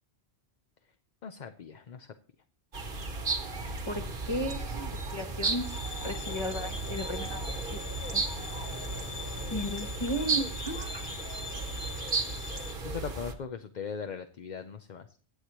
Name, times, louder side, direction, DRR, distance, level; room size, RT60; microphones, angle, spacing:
voice 1, 1.2-2.1 12.8-15.1, left 6 dB, 45° left, 8 dB, 0.7 m, -39 dB
sound 1, 2.7-13.3, right 3 dB, 50° right, 1.4 m, -34 dB
voice 2, 3.8-5.7 6.0-7.8 8.1-8.2 9.5-11.0, equal, 25° left, 1 dB, 1.0 m, -35 dB
sound 2, 5.6-12.7, left 8 dB, 70° left, 1.3 m, -43 dB
22.5 x 8.2 x 3.0 m, 0.41 s
omnidirectional pair, 1.2 m